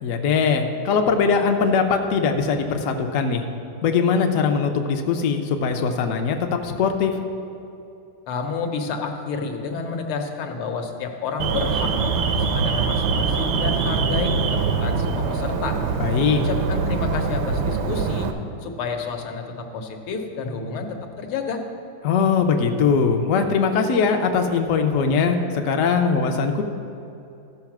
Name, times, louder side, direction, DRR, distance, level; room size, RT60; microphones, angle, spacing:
voice 1, 0.0-3.5 3.8-7.2 16.0-16.4 22.0-26.6, left 5 dB, 70° left, 4 dB, 0.8 m, -21 dB
voice 2, 8.3-15.8 16.4-18.3 18.6-21.6, left 4 dB, 85° left, 3 dB, 1.8 m, -30 dB
Alarm, 11.4-18.3, right 5 dB, 75° right, 1.4 m, -23 dB
14.0 x 4.9 x 5.9 m, 2.7 s
omnidirectional pair, 2.3 m